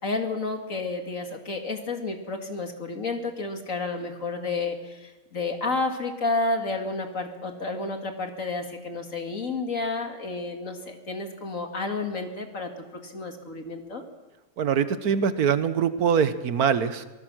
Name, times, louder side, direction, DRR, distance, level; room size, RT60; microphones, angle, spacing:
voice 1, 0.0-14.0, left 3 dB, 60° left, 4 dB, 2.6 m, -31 dB
voice 2, 14.6-17.0, right 7 dB, 85° right, 12 dB, 1.6 m, -23 dB
25.0 x 19.0 x 6.3 m, 1.2 s
omnidirectional pair, 1.6 m